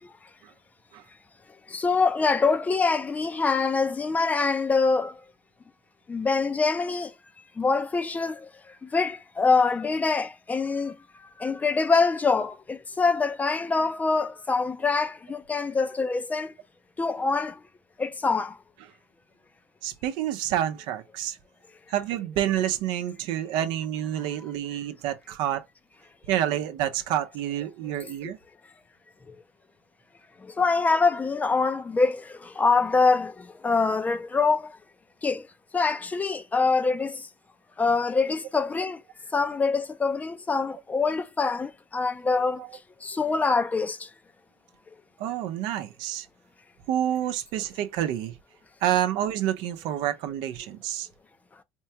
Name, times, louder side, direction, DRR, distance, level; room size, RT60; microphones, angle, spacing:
voice 1, 1.7-5.2 6.1-7.1 7.6-8.5 8.8-11.0 11.4-16.5 17.0-17.6 18.0-18.6 28.0-28.3 29.3-29.4 30.4-34.8 35.2-35.5 35.7-37.2 37.8-39.0 39.3-42.6 43.0-44.1, left 4 dB, 20° left, 0.4 m, -25 dB
voice 2, 19.8-21.4 21.9-25.7 26.3-28.4 42.6-42.7 45.2-46.3 46.9-48.4 48.8-51.1, right 11 dB, 75° right, 0.6 m, -28 dB
4.4 x 2.2 x 2.7 m
supercardioid pair, 105°, 8 cm